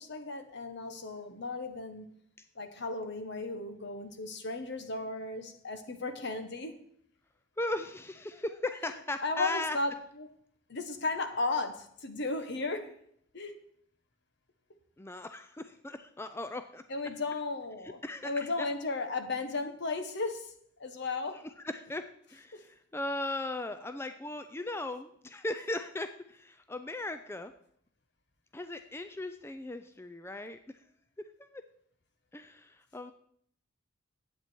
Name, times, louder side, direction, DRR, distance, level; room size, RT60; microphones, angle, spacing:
voice 1, 0.0-2.0 2.6-6.8 9.2-10.3 10.7-13.0 13.3-13.6 16.9-20.5 20.8-21.4 22.5-22.6, left 3 dB, 60° left, 8 dB, 1.2 m, -35 dB
voice 2, 7.6-9.8 15.0-16.8 17.8-18.7 21.6-22.0 22.3-27.5 28.5-30.8 31.2-31.6 32.3-33.1, left 2 dB, 10° left, 9 dB, 0.4 m, -38 dB
11.0 x 8.5 x 4.5 m, 0.66 s
head